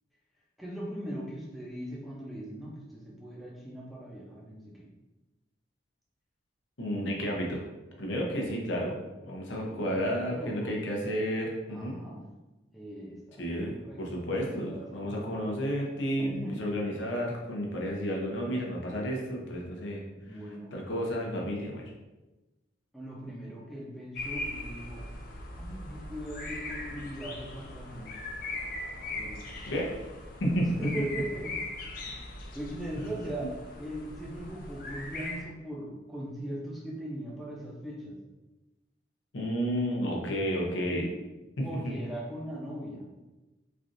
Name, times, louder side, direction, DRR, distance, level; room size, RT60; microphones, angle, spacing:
voice 1, 0.6-4.9 9.6-10.9 11.7-12.2 12.7-15.4 16.2-16.6 19.5-19.6 20.1-20.7 22.9-25.0 25.6-28.1 29.1-29.4 30.8-31.7 32.0-32.2 32.5-33.5 33.8-38.2 40.9-41.1 41.6-43.0, right 1 dB, ahead, -5 dB, 0.6 m, -40 dB
voice 2, 6.8-7.6 8.0-12.0 13.4-20.0 20.7-21.9 29.7-29.9 30.4-30.7 39.3-41.0 41.6-42.0, equal, 85° left, -1 dB, 0.7 m, -31 dB
sound 1, 24.1-35.4, left 2 dB, 50° left, 0.4 m, -40 dB
3.2 x 2.5 x 2.5 m, 1.1 s
head